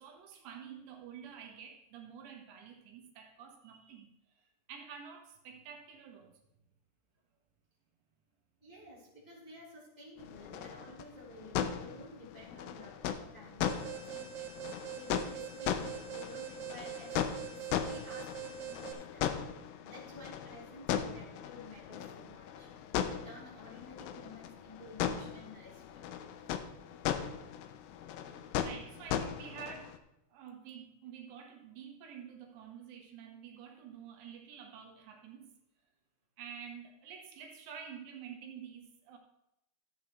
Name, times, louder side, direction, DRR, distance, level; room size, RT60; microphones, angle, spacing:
voice 1, 0.0-4.1 4.7-6.4 28.6-30.0 30.3-35.5 36.4-39.2, right 7 dB, 80° right, 3.3 m, -49 dB
voice 2, 8.6-26.1, left 1 dB, 10° left, 2.4 m, -52 dB
sound 1, 10.2-30.0, left 9 dB, 90° left, 2.0 m, -38 dB
Alarm, 13.7-18.9, right 10 dB, 60° right, 2.1 m, -44 dB
14.0 x 8.4 x 3.1 m
omnidirectional pair, 5.0 m